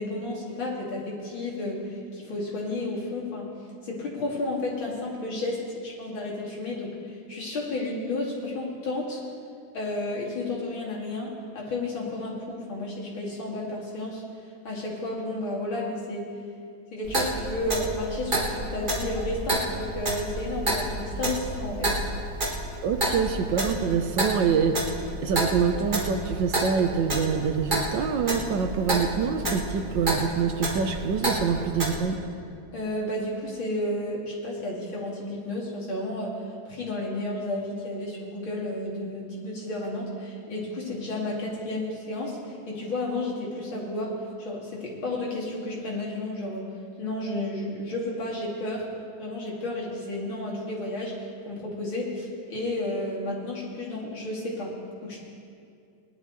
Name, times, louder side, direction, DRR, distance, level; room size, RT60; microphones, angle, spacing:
voice 1, 0.0-3.5 3.8-9.2 9.7-14.2 14.6-16.3 16.9-21.9 32.7-46.7 47.0-48.9 49.2-54.8 55.0-55.2, left 2 dB, 75° left, -4 dB, 3.4 m, -32 dB
Clock, 17.0-32.0, right 1 dB, 25° right, 1.7 m, -30 dB
voice 2, 22.8-24.8 25.2-32.2, right 6 dB, 70° right, 7 dB, 1.3 m, -25 dB
19.5 x 11.0 x 4.0 m, 2.4 s
omnidirectional pair, 2.2 m